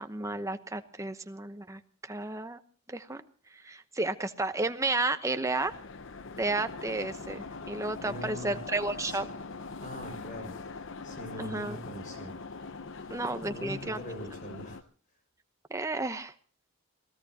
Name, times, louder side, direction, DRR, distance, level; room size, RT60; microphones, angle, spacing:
voice 1, 0.0-2.6 2.9-3.3 3.5-5.7 6.4-9.3 11.4-11.8 13.1-14.0 15.7-16.3, right 2 dB, 15° right, 9 dB, 0.9 m, -32 dB
sound 1, 5.6-14.8, left 4 dB, 60° left, 0.8 m, -42 dB
voice 2, 8.0-8.6 9.0-9.3 9.8-12.3 12.9-13.1 13.4-14.8, equal, 40° left, 5 dB, 6.1 m, -42 dB
27.5 x 17.5 x 2.9 m, 0.40 s
head